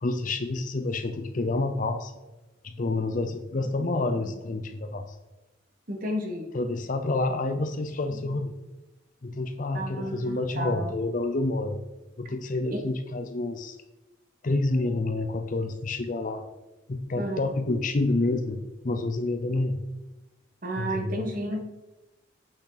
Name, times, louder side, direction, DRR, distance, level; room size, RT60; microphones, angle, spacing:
voice 1, 0.0-2.1 2.6-5.2 6.5-8.5 9.2-11.8 12.2-13.8 14.4-16.4 16.9-19.8 20.8-21.3, left 2 dB, 45° left, 8 dB, 0.6 m, -28 dB
voice 2, 5.9-6.5 9.7-10.9 12.7-12.8 17.2-17.4 20.6-21.6, right 1 dB, 45° right, 2 dB, 1.5 m, -32 dB
8.6 x 6.3 x 4.1 m, 1.1 s
head